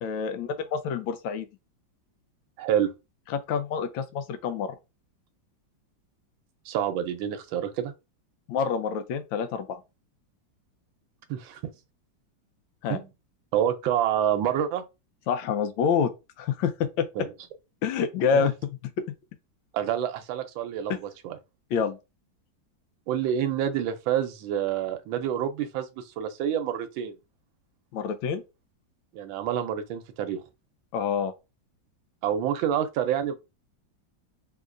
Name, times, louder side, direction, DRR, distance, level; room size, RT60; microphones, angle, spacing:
voice 1, 0.0-1.5 3.3-4.7 8.5-9.8 12.8-13.0 15.3-16.1 16.4-17.1 17.8-18.5 19.0-19.1 21.7-22.0 27.9-28.4 30.9-31.3, left 6 dB, 80° left, 1.4 m, -27 dB
voice 2, 2.6-2.9 6.7-7.9 11.3-11.6 12.9-13.1 13.5-14.8 17.2-17.3 18.3-18.5 19.7-21.4 23.1-27.1 29.1-30.4 32.2-33.3, right 10 dB, 85° right, 1.4 m, -27 dB
3.6 x 2.8 x 2.5 m
omnidirectional pair, 2.1 m